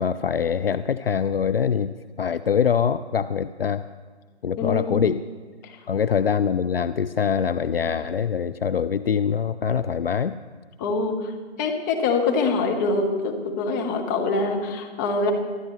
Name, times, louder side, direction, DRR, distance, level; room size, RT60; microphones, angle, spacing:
voice 1, 0.0-3.8 4.4-5.2 5.9-10.4, left 7 dB, 60° left, 13 dB, 0.5 m, -24 dB
voice 2, 4.6-5.0 5.6-5.8 10.8-11.3 11.6-15.3, left 3 dB, 15° left, 3 dB, 1.1 m, -24 dB
23.5 x 12.5 x 3.2 m, 1.4 s
figure-of-eight pair, 140°, 34 cm